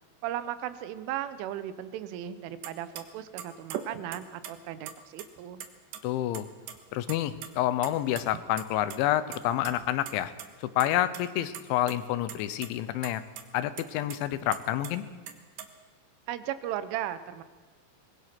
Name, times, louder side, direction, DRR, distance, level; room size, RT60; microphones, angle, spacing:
voice 1, 0.2-5.6 16.3-17.4, right 11 dB, 85° right, 13 dB, 3.5 m, -36 dB
sound 1, 2.6-2.7 3.0-3.1 3.4-4.5 4.9-5.7 5.9-6.0 6.3-6.8 7.0-7.5 7.8-9.0 9.3-9.7 10.1-10.2 10.4-10.5 10.8-11.2 11.5-12.0 12.3-12.7 13.0-13.1 13.4-13.5 13.8-14.9 15.3-15.7, right 9 dB, 70° right, 3.3 m, -40 dB
voice 2, 6.0-6.5 6.9-10.3 10.6-13.2 13.5-15.0, left 13 dB, 80° left, 13 dB, 3.2 m, -28 dB
24.0 x 21.5 x 6.0 m, 1.4 s
omnidirectional pair, 5.5 m